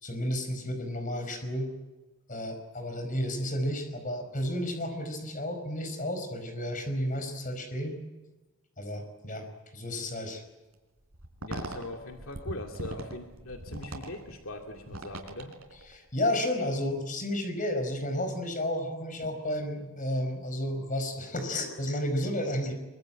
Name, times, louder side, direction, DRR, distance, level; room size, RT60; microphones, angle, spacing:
voice 1, 0.0-1.7 2.3-8.0 8.8-9.5 9.7-10.4 15.9-22.7, left 1 dB, 40° left, 7 dB, 5.0 m, -32 dB
sound 1, 11.1-16.1, right 1 dB, 85° right, 4.0 m, -41 dB
voice 2, 11.4-15.6, left 1 dB, 75° left, 2 dB, 2.4 m, -41 dB
23.5 x 23.0 x 8.9 m, 1.1 s
head